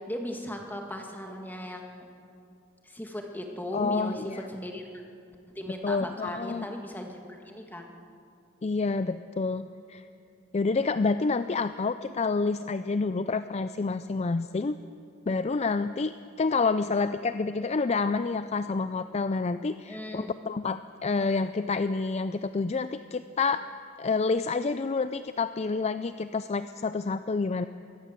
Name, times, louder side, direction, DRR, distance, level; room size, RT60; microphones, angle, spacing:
voice 1, 0.1-2.1 2.8-4.8 5.6-8.0 19.9-20.3, left 1 dB, 10° left, 2 dB, 1.9 m, -37 dB
voice 2, 3.7-4.5 5.8-6.7 8.6-9.6 9.9-10.0 10.5-14.8 15.3-23.7 24.0-27.7, left 4 dB, 30° left, 12 dB, 0.4 m, -28 dB
23.0 x 17.0 x 7.5 m, 2.6 s
head